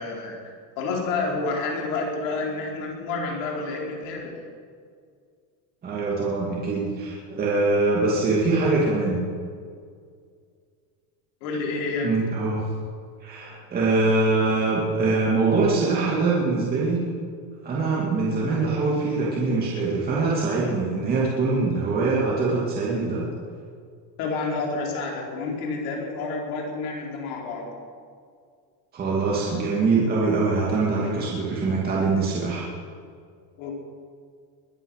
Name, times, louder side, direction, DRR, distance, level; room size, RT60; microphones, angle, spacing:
voice 1, 0.0-4.3 11.4-12.1 24.2-27.7 33.6-33.7, left 3 dB, 60° left, -1 dB, 4.4 m, -29 dB
voice 2, 5.8-9.2 12.0-12.6 13.2-17.0 17.6-23.3 28.9-32.6, right 3 dB, 20° right, -5 dB, 2.4 m, -23 dB
22.0 x 9.8 x 6.5 m, 2.1 s
supercardioid pair, 170°, 47 cm